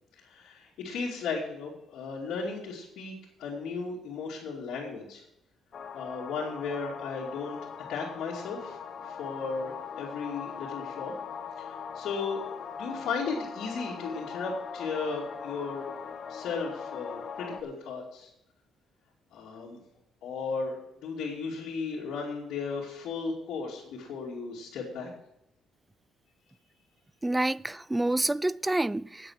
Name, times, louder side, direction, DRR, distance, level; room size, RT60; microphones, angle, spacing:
voice 1, 0.2-3.1 3.4-5.2 5.9-7.6 7.9-11.2 11.6-12.4 12.8-15.9 16.3-18.3 19.3-19.8 20.2-25.1, left 4 dB, 75° left, 2.7 m, -35 dB
sound 1, 5.7-17.6, left 6 dB, 55° left, 1.1 m, -40 dB
voice 2, 27.2-29.3, right 1 dB, 15° right, 0.3 m, -28 dB
9.3 x 9.2 x 6.5 m
cardioid pair, 80°, 0 cm